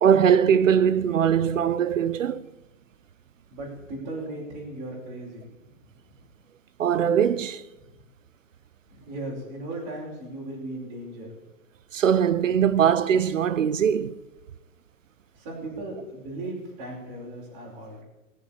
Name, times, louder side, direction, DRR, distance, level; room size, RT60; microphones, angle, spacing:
voice 1, 0.0-2.5 6.8-7.6 11.9-14.2, right 8 dB, 65° right, 0.9 m, -21 dB
voice 2, 3.5-5.4 6.1-6.2 7.8-7.9 8.9-11.3 12.5-12.6 15.3-18.0, right 2 dB, 25° right, 4.8 m, -37 dB
19.5 x 7.3 x 8.6 m
hypercardioid pair, 170°, 42 cm